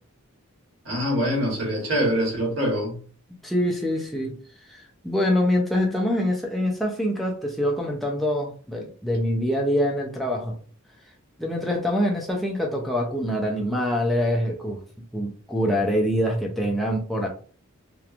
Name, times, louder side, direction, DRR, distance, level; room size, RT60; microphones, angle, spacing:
voice 1, 0.8-3.0, equal, 65° right, 1.2 m, -24 dB
voice 2, 3.4-4.4 4.7-10.5 11.4-14.8 15.1-17.3, equal, ahead, 0.3 m, -25 dB
2.8 x 2.1 x 2.4 m
head